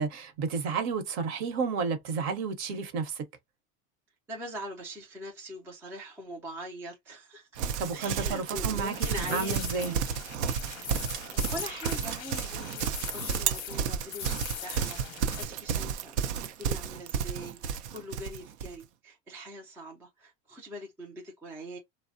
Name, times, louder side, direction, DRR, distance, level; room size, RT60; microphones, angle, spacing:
voice 1, 0.0-3.2 7.8-9.0 9.3-9.9, right 5 dB, 50° right, 0.9 m, -31 dB
voice 2, 4.3-7.5 7.9-10.0 11.2-21.8, equal, 5° right, 0.3 m, -42 dB
Livestock farm animals working animals, 7.6-18.8, right 7 dB, 75° right, 0.6 m, -32 dB
sound 1, 8.9-15.4, left 10 dB, 45° left, 0.6 m, -41 dB
3.1 x 2.0 x 2.5 m
supercardioid pair, 155°, 35 cm